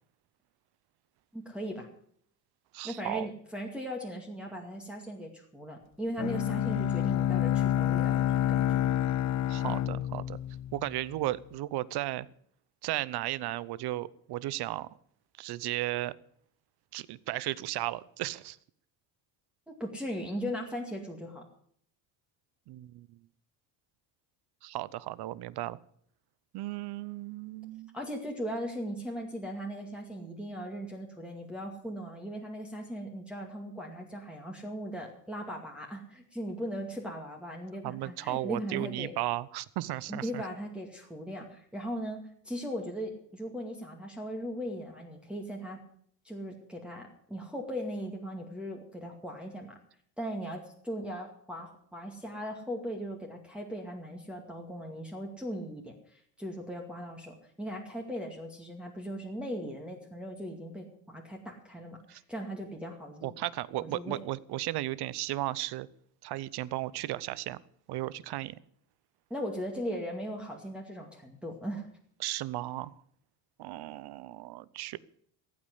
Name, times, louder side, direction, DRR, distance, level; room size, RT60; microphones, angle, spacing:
voice 1, 1.3-1.9 2.8-8.7 19.7-21.4 27.9-39.1 40.1-45.8 46.2-49.8 50.2-63.3 63.8-64.2 69.3-71.9, equal, ahead, -1 dB, 2.2 m, -38 dB
voice 2, 2.7-3.3 9.5-10.4 10.7-12.3 12.8-14.9 15.4-16.1 16.9-18.6 22.7-23.2 24.6-25.8 26.5-28.0 37.8-40.4 62.1-62.2 63.2-65.9 66.2-67.6 67.9-68.5 72.2-72.9 73.6-75.0, right 16 dB, 55° right, 20 dB, 0.8 m, -35 dB
Bowed string instrument, 6.2-11.2, left 11 dB, 40° left, 0.6 m, -28 dB
15.0 x 8.7 x 8.3 m, 0.64 s
cardioid pair, 110°, 46 cm